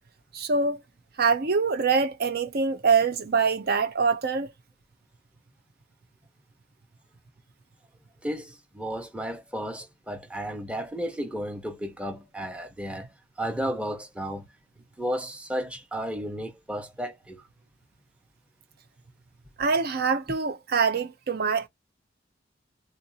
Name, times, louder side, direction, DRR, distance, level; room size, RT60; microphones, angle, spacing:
voice 1, 0.3-0.8 1.2-4.5 19.6-21.7, right 5 dB, 55° right, 0.6 m, -24 dB
voice 2, 8.2-13.1 13.4-14.5 15.0-17.5, equal, 5° right, 0.8 m, -33 dB
3.8 x 2.6 x 2.7 m
head